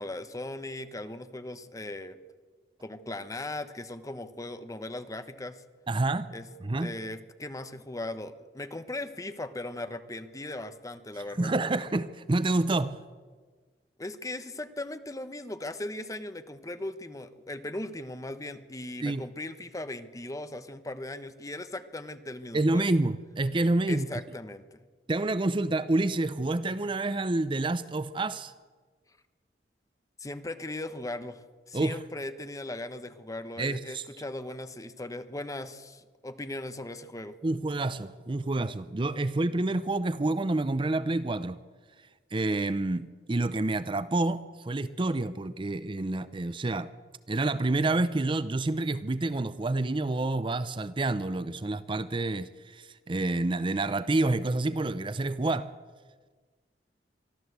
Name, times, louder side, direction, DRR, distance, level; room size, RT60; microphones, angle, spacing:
voice 1, 0.0-2.2 2.8-5.6 6.3-6.5 6.8-11.5 14.0-23.0 23.9-24.8 30.2-37.4, left 2 dB, 20° left, 1.0 m, -38 dB
voice 2, 5.9-6.3 6.6-7.0 11.4-13.0 19.0-19.2 22.5-24.1 25.1-28.5 31.7-32.0 33.6-34.0 37.4-41.6 42.3-46.9 47.3-55.7, right 2 dB, 30° right, 0.6 m, -28 dB
23.5 x 14.0 x 8.1 m
head